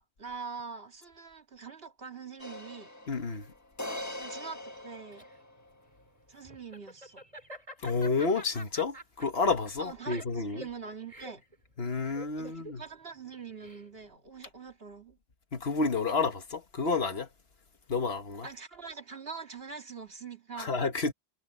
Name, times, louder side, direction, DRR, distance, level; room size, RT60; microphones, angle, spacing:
voice 1, 0.0-2.9 4.2-5.3 6.3-7.2 9.8-11.4 12.4-15.2 18.4-20.7, right 5 dB, 65° right, 2.3 m, -44 dB
sound 1, 2.4-5.8, left 1 dB, 15° left, 1.5 m, -42 dB
voice 2, 3.1-3.5 7.8-10.7 11.8-12.8 15.5-17.3 17.9-18.5 20.6-21.1, left 4 dB, 70° left, 1.8 m, -30 dB
Laughter, 4.7-14.2, equal, 35° right, 4.6 m, -48 dB
omnidirectional pair, 1.1 m